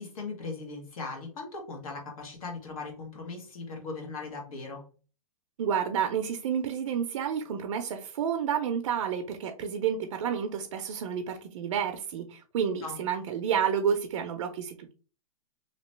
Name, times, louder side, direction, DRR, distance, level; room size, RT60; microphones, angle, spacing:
voice 1, 0.0-4.8 12.8-13.0, left 3 dB, 70° left, 1.4 m, -39 dB
voice 2, 5.6-14.9, right 8 dB, 60° right, 0.5 m, -30 dB
2.9 x 2.8 x 3.1 m
hypercardioid pair, 155°, 19 cm